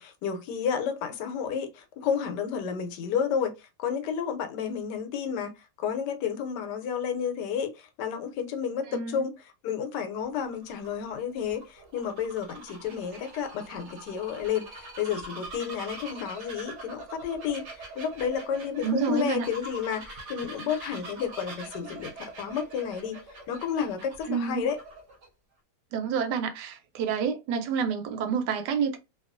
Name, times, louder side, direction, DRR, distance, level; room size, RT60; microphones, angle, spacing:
voice 1, 0.0-23.2 23.5-24.8, left 7 dB, 85° left, 1.2 m, -31 dB
voice 2, 8.9-9.2 18.8-19.5 24.3-24.7 25.9-29.0, right 6 dB, 80° right, 1.2 m, -28 dB
Bird vocalization bird call bird song, 10.2-25.3, right 2 dB, 55° right, 0.9 m, -44 dB
2.8 x 2.3 x 2.4 m
omnidirectional pair, 1.8 m